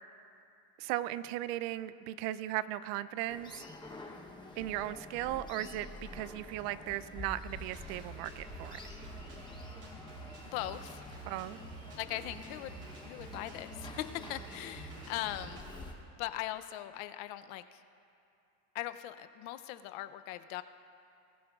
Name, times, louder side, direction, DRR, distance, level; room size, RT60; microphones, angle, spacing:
voice 1, 0.8-3.6 4.6-5.9 6.1-8.8 11.3-11.6, right 14 dB, 65° right, 16 dB, 0.6 m, -37 dB
sound 1, 3.3-15.9, left 2 dB, 10° left, 0.8 m, -48 dB
Drum kit, 7.5-15.8, right 3 dB, 40° right, 3.5 m, -49 dB
voice 2, 10.4-11.1 12.0-15.6 16.2-17.8 18.7-20.6, left 14 dB, 60° left, 11 dB, 0.6 m, -40 dB
21.0 x 15.0 x 2.4 m, 2.5 s
cardioid pair, 150°, 50 cm